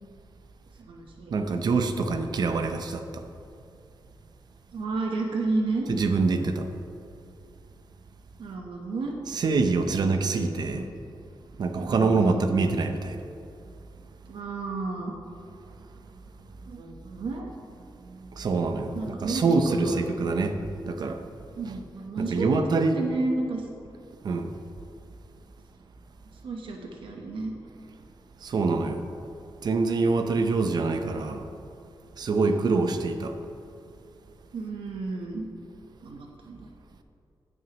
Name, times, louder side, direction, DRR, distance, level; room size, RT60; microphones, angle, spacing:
voice 1, 0.8-1.3 4.7-5.9 8.4-9.2 9.9-10.0 10.3-10.4 10.7-10.9 11.8-12.4 14.3-15.1 16.7-17.5 18.9-20.0 21.5-22.6 22.9-23.7 26.4-27.5 32.4-32.9 34.5-35.4 36.0-36.7, right 3 dB, 90° right, 0 dB, 1.0 m, -32 dB
voice 2, 1.3-3.2 5.9-6.7 9.3-10.9 11.6-13.2 18.1-20.6 20.8-21.2 22.2-23.0 24.2-24.5 28.4-29.1 29.6-31.5 32.2-33.4, right 3 dB, 55° right, 7 dB, 0.6 m, -25 dB
16.0 x 6.3 x 3.0 m, 2.5 s
wide cardioid pair, 150°, 8 cm